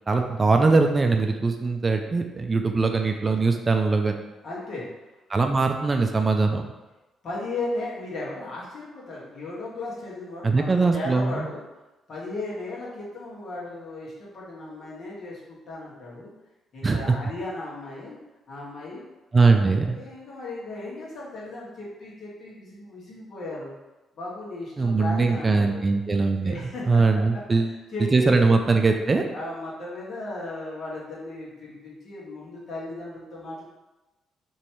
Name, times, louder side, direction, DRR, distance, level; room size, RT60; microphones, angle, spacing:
voice 1, 0.1-4.2 5.3-6.6 10.4-11.5 16.8-17.1 19.3-20.0 24.8-27.7 28.1-29.2, right 3 dB, 30° right, 5 dB, 0.4 m, -21 dB
voice 2, 4.4-4.9 7.2-11.6 12.1-16.3 16.7-18.1 18.5-19.0 19.3-23.7 24.1-25.8 26.4-27.0 27.9-28.4 29.3-33.6, left 2 dB, 55° left, -6 dB, 1.5 m, -36 dB
3.1 x 2.8 x 4.5 m, 1.1 s
cardioid pair, 90°, 0 cm